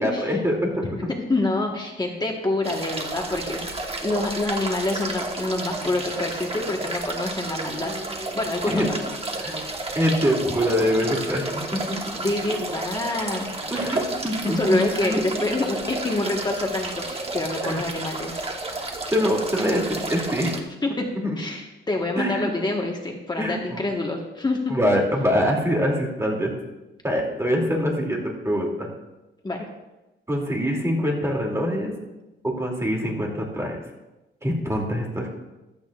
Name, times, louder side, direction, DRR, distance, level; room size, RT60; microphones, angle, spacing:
voice 1, 0.0-1.1 8.7-8.9 9.4-9.6 9.9-11.6 11.9-12.0 13.7-15.2 17.7-17.8 18.8-20.6 21.2-21.4 22.2-22.5 23.4-23.8 24.7-26.5 27.0-28.9 30.3-31.9 32.4-33.8 34.4-35.3, equal, 15° right, -1 dB, 2.6 m, -24 dB
voice 2, 1.3-7.9 8.3-8.8 12.2-13.5 14.5-18.4 20.8-20.9 21.4-24.8 29.4-29.6, left 2 dB, 20° left, 0 dB, 1.3 m, -26 dB
sound 1, 2.6-20.6, right 2 dB, 30° right, 1.3 m, -31 dB
15.0 x 12.5 x 2.4 m, 1.0 s
wide cardioid pair, 125°, 20 cm